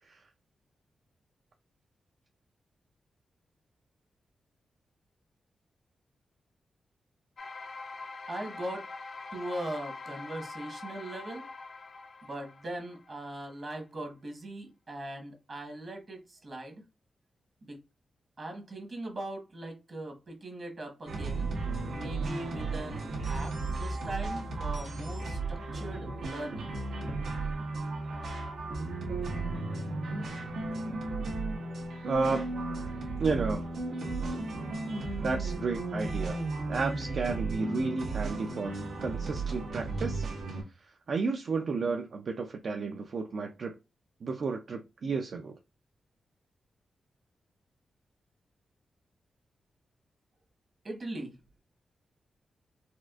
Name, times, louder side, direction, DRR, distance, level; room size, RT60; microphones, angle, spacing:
sound 1, 7.4-13.3, left 3 dB, 45° left, 0.5 m, -44 dB
voice 1, 8.3-8.9 9.3-11.5 12.2-16.8 17.6-17.8 18.4-21.5 21.9-26.7 50.8-51.4, right 1 dB, 40° right, 1.1 m, -40 dB
sound 2, 21.1-40.6, right 3 dB, 90° right, 1.0 m, -34 dB
voice 2, 32.0-32.5 33.2-33.6 35.2-36.4 36.7-40.2 41.1-43.7 44.2-45.5, right 4 dB, 55° right, 0.4 m, -32 dB
4.2 x 2.4 x 2.3 m
wide cardioid pair, 145°, 0 cm